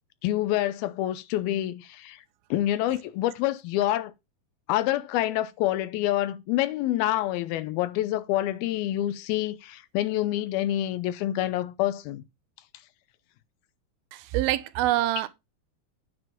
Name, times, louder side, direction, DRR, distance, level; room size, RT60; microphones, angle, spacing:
voice 1, 0.2-2.2 2.5-4.1 4.7-12.2, left 13 dB, 80° left, 2.5 m, -27 dB
voice 2, 14.1-15.3, right 15 dB, 80° right, 2.4 m, -25 dB
9.6 x 4.8 x 5.8 m
omnidirectional pair, 4.4 m